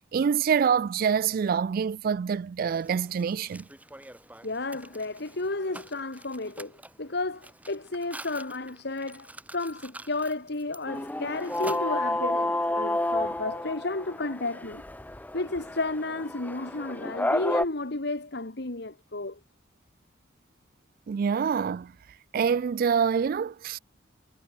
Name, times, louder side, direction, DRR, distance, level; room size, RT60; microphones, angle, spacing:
voice 1, 0.1-3.6 21.1-21.9 22.3-23.8, right 6 dB, 50° right, 0.3 m, -26 dB
Mechanisms, 2.6-12.4, right 1 dB, 10° right, 7.0 m, -47 dB
voice 2, 4.4-14.8 15.3-19.4, left 2 dB, 60° left, 1.7 m, -32 dB
sound 1, 10.9-17.7, left 1 dB, 10° left, 0.8 m, -30 dB
head